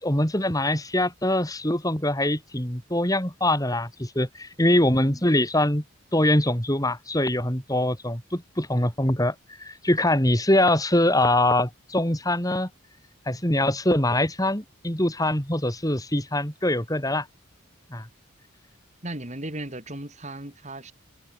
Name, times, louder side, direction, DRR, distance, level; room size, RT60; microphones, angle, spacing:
voice 1, 0.0-5.8 6.1-12.7 13.3-17.3 17.9-18.1, left 1 dB, 15° left, 4.4 m, -23 dB
voice 2, 19.0-20.9, right 1 dB, 35° right, 5.5 m, -36 dB
head